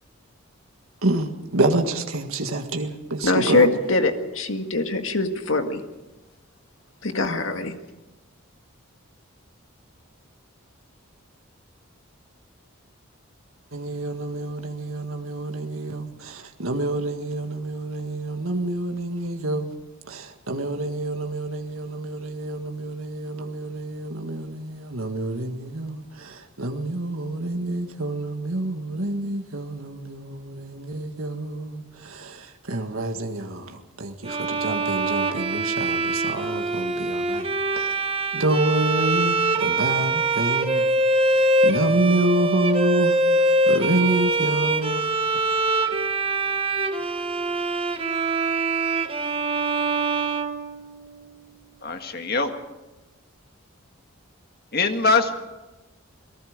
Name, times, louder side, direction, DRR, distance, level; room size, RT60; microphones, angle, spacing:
voice 1, 1.0-3.7 13.7-19.7 20.1-38.0 38.3-40.9 41.1-45.1, right 1 dB, 75° right, 1.8 m, -28 dB
voice 2, 3.2-5.8 7.0-7.8, left 3 dB, 65° left, 1.9 m, -23 dB
Bowed string instrument, 34.2-51.2, right 2 dB, 25° right, 1.2 m, -24 dB
voice 3, 51.8-52.5 54.7-55.4, left 3 dB, 45° left, 1.8 m, -22 dB
28.5 x 19.0 x 5.2 m
head